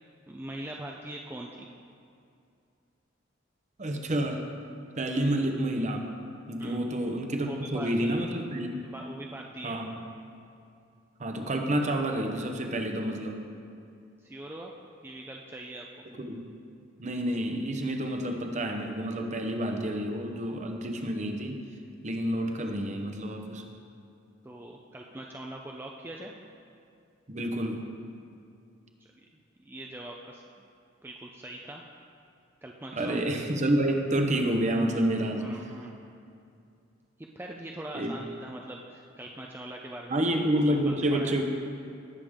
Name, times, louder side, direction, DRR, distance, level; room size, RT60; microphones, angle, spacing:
voice 1, 0.3-1.7 5.1-5.2 6.6-6.9 7.4-8.2 8.9-9.8 14.2-14.7 15.0-15.9 24.4-26.3 29.7-30.7 31.0-31.8 32.6-33.3 35.3-35.9 37.2-40.3 40.9-41.3, right 1 dB, 10° right, 0 dB, 0.5 m, -42 dB
voice 2, 3.8-4.4 5.0-6.1 6.5-8.9 9.6-10.0 11.2-13.4 16.2-16.4 17.0-21.6 22.0-23.6 27.3-27.8 32.9-35.5 37.9-38.1 40.1-41.4, right 1 dB, 40° right, 4 dB, 0.9 m, -29 dB
18.0 x 6.9 x 3.6 m, 2.5 s
head